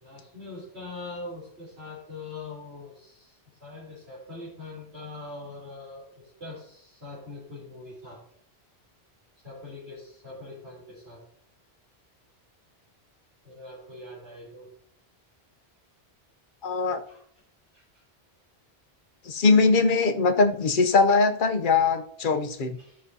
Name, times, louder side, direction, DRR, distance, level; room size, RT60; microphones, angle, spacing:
voice 1, 0.0-8.2 9.4-11.2 13.4-14.7 17.1-17.2 17.7-18.0 22.2-22.4 22.8-23.0, left 2 dB, 80° right, -9 dB, 3.4 m, -42 dB
voice 2, 16.6-17.0 19.3-22.8, left 4 dB, 55° left, 6 dB, 0.9 m, -21 dB
15.0 x 6.2 x 2.7 m, 0.65 s
omnidirectional pair, 1.1 m